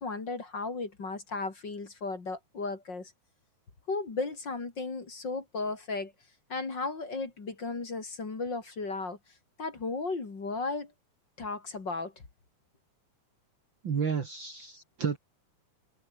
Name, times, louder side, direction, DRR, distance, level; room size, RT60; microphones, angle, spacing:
voice 1, 0.0-3.1 3.9-6.1 6.5-9.2 9.6-10.9 11.4-12.1, left 3 dB, 35° left, 3.5 m, -35 dB
voice 2, 13.8-15.2, right 6 dB, 45° right, 2.3 m, -31 dB
omnidirectional pair, 3.5 m